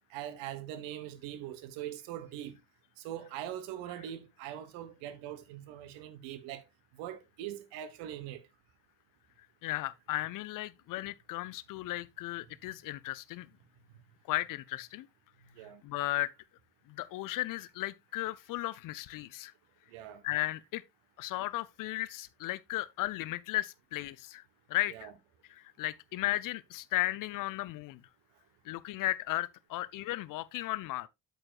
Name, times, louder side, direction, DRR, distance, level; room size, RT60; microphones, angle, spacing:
voice 1, 0.1-2.6 3.0-6.6 7.0-8.4 15.6-15.8 19.9-20.2 24.9-25.2, right 11 dB, 60° right, 1.2 m, -42 dB
voice 2, 9.6-13.5 14.3-15.1 15.8-16.3 16.9-19.5 20.2-20.8 21.2-24.4 24.7-25.1 25.6-28.0 28.7-31.1, left 17 dB, 45° left, 0.5 m, -35 dB
8.7 x 7.9 x 2.4 m
figure-of-eight pair, 50°, 50 cm